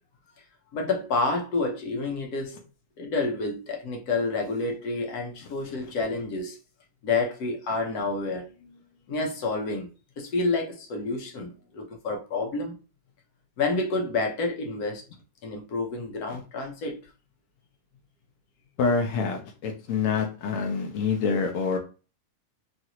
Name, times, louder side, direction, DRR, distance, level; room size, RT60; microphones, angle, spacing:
voice 1, 0.7-2.6 3.0-6.6 7.0-8.8 9.1-9.9 10.2-12.7 13.6-15.0 15.4-17.0, left 3 dB, 85° left, 1.2 m, -29 dB
voice 2, 18.8-21.8, left 5 dB, 65° left, 1.0 m, -26 dB
3.1 x 2.5 x 2.8 m
omnidirectional pair, 1.6 m